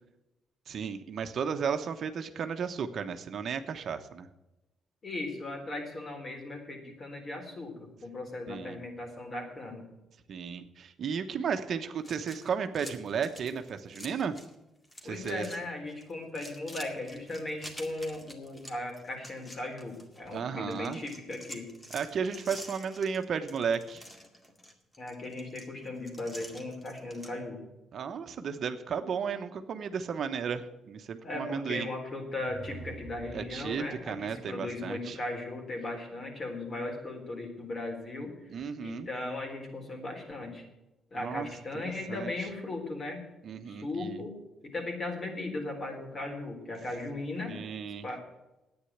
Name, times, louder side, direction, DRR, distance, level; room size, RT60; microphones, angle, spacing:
voice 1, 0.7-4.3 8.5-8.8 10.3-14.3 15.0-15.4 20.3-21.0 21.9-24.0 27.9-31.9 33.3-35.2 38.5-39.1 41.1-41.5 41.8-42.3 43.4-44.2 47.5-48.0, right 6 dB, 60° right, 8 dB, 0.9 m, -34 dB
voice 2, 5.0-9.9 15.0-21.7 25.0-27.6 31.2-40.6 41.1-43.3 43.7-44.4 44.6-47.6 48.0-48.2, left 2 dB, 40° left, 3 dB, 3.9 m, -37 dB
sound 1, 12.0-14.5 14.8-15.6 15.9-20.3 20.7-27.3, equal, 20° left, 2.1 m, -48 dB
sound 2, 32.3-34.2, right 5 dB, 45° right, 0.5 m, -47 dB
10.0 x 9.0 x 7.9 m, 0.97 s
cardioid pair, 90°, 0 cm